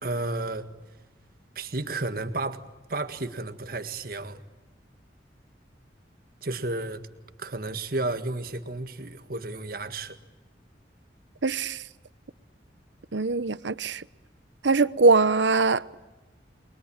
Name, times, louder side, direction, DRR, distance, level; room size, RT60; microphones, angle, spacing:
voice 1, 0.0-0.7 1.6-4.4 6.4-7.0 7.4-10.2, right 2 dB, 50° right, 1.8 m, -32 dB
voice 2, 11.4-11.8 13.1-14.0 14.6-15.9, right 3 dB, 80° right, 0.9 m, -22 dB
30.0 x 22.5 x 8.8 m
head